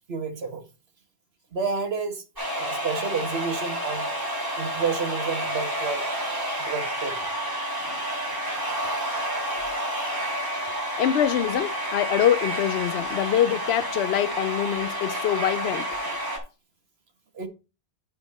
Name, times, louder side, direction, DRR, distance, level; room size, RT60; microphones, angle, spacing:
voice 1, 0.1-0.6 1.5-2.2 2.5-4.1 4.6-6.0 6.6-7.2 17.3-17.5, right 5 dB, 70° right, 1.5 m, -30 dB
sound 1, 2.4-16.4, equal, 20° right, 2.5 m, -30 dB
voice 2, 11.0-15.9, left 10 dB, 75° left, 0.8 m, -24 dB
9.9 x 4.4 x 4.1 m
omnidirectional pair, 1.1 m